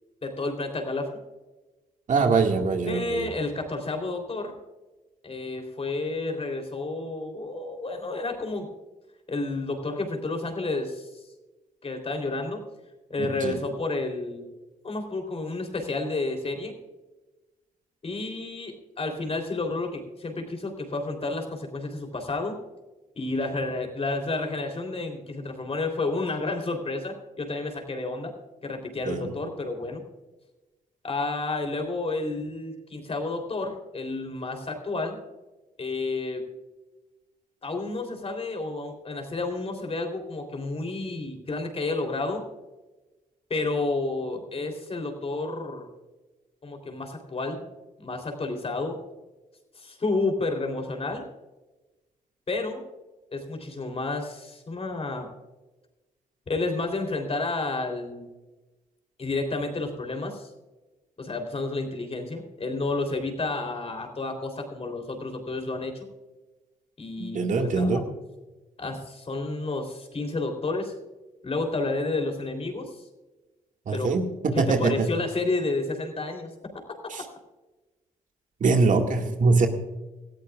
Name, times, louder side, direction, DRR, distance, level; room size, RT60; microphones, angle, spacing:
voice 1, 0.2-1.1 2.9-4.5 5.2-8.7 9.3-11.2 11.8-12.6 13.1-14.5 14.8-16.7 18.0-22.6 23.1-28.3 28.6-30.0 31.0-35.2 35.8-36.4 37.6-42.4 43.5-45.9 46.6-47.6 48.0-49.0 49.7-51.2 52.5-52.8 53.3-55.3 56.5-58.3 59.2-60.5 61.2-66.0 67.0-68.0 68.8-70.9 71.4-73.0 73.9-74.1 74.5-76.5, left 3 dB, 40° left, 4 dB, 3.5 m, -30 dB
voice 2, 2.1-3.3 13.2-13.6 29.1-29.4 67.2-68.0 73.9-74.3 74.5-75.1 77.1-77.2 78.6-79.7, right 4 dB, 60° right, 4 dB, 2.0 m, -23 dB
18.5 x 13.5 x 2.4 m, 1.1 s
cardioid pair, 60°, 15 cm